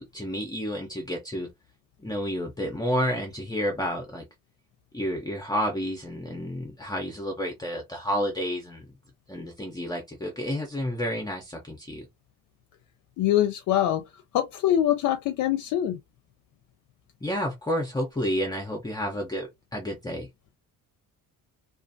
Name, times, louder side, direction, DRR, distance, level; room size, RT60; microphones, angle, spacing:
voice 1, 0.0-1.5 2.0-4.2 4.9-8.8 9.3-12.0 17.2-20.3, equal, 10° left, 0.5 m, -30 dB
voice 2, 13.2-14.0 14.3-16.0, left 12 dB, 65° left, 0.5 m, -24 dB
2.4 x 2.4 x 2.5 m
cardioid pair, 145°, 33 cm